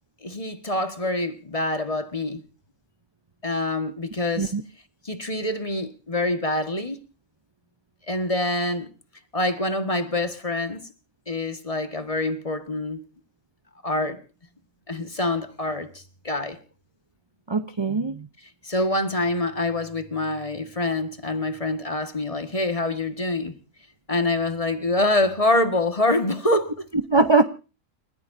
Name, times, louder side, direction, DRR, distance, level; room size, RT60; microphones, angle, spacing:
voice 1, 0.2-2.4 3.4-4.5 5.0-7.0 8.1-8.9 9.3-10.9 11.3-13.1 13.8-14.2 14.9-16.6 18.6-23.6 24.1-26.7, left 2 dB, 25° left, 1.7 m, -25 dB
voice 2, 17.5-18.3 27.1-27.4, right 3 dB, 25° right, 0.7 m, -21 dB
29.5 x 15.0 x 2.7 m
omnidirectional pair, 1.4 m